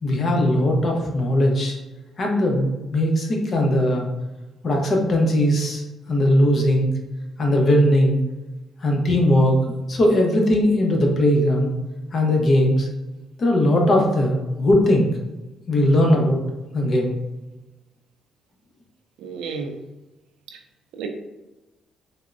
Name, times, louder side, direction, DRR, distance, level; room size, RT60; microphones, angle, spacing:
voice 1, 0.0-1.7 2.2-4.1 4.6-5.8 6.1-6.9 7.4-8.2 8.8-9.6 9.9-11.7 12.1-12.9 13.4-15.1 15.7-16.4 16.7-17.1, left 1 dB, 50° left, 1 dB, 0.7 m, -19 dB
voice 2, 19.2-19.8 20.5-20.6 20.9-21.1, right 5 dB, 85° right, 4 dB, 0.3 m, -32 dB
3.4 x 2.0 x 2.4 m, 1.1 s
cardioid pair, 90°, 0 cm